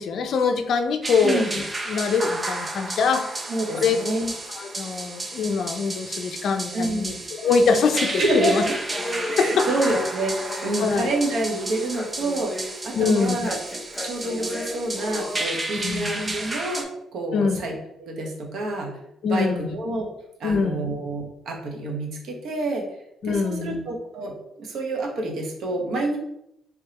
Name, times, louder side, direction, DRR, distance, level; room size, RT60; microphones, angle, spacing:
voice 1, 0.0-1.6 1.9-3.3 3.7-4.0 4.6-7.1 7.4-8.6 9.4-9.7 10.8-11.1 13.0-13.4 15.8-16.2 17.3-17.6 19.2-19.7 20.4-20.9 23.2-23.9, left 5 dB, 65° left, 7 dB, 0.5 m, -23 dB
sound 1, 1.0-16.8, right 2 dB, 25° right, 0.7 m, -32 dB
voice 2, 1.2-1.6 3.5-4.3 6.7-7.2 8.2-8.7 9.3-12.5 12.8-13.6 14.0-16.9 17.1-17.7 18.0-19.0 19.2-20.1 20.4-22.8 23.2-26.2, right 2 dB, 70° right, 1 dB, 1.0 m, -28 dB
Human voice, 7.4-15.5, left 1 dB, 15° left, 0.7 m, -35 dB
3.5 x 3.4 x 2.9 m, 0.80 s
cardioid pair, 90°, 0 cm